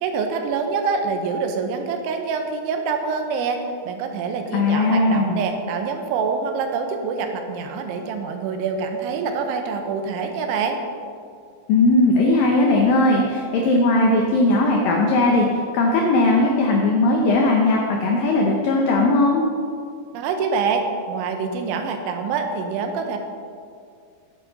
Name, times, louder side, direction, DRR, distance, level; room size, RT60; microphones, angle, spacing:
voice 1, 0.0-3.6 3.9-10.8 20.1-23.2, right 5 dB, 85° right, 5 dB, 3.3 m, -25 dB
voice 2, 4.5-5.4 11.7-19.4, left 2 dB, 85° left, 0 dB, 2.0 m, -18 dB
10.5 x 9.2 x 4.0 m, 2.2 s
omnidirectional pair, 5.3 m